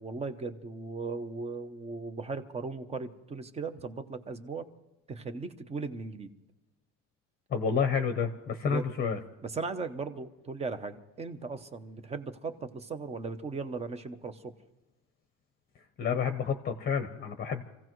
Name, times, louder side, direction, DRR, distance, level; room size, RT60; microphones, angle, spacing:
voice 1, 0.0-4.7 5.1-6.3 8.6-8.9 9.4-14.5, right 4 dB, 20° right, 10 dB, 0.8 m, -37 dB
voice 2, 7.5-9.2 16.0-17.6, left 6 dB, 25° left, 8 dB, 0.8 m, -29 dB
27.5 x 16.0 x 3.1 m, 1.0 s
cardioid pair, 160°, 34 cm